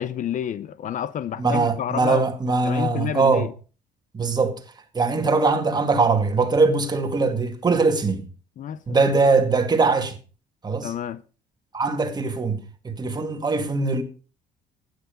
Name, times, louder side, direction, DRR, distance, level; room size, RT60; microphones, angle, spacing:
voice 1, 0.0-2.2 2.6-3.5 8.6-8.8 10.8-11.2, left 9 dB, 50° left, 0.7 m, -29 dB
voice 2, 1.4-3.5 4.1-4.6 4.9-8.3 8.9-10.2 10.6-10.9 11.7-14.0, right 4 dB, 25° right, 2.2 m, -21 dB
12.0 x 9.8 x 5.2 m
cardioid pair, 110°, 17 cm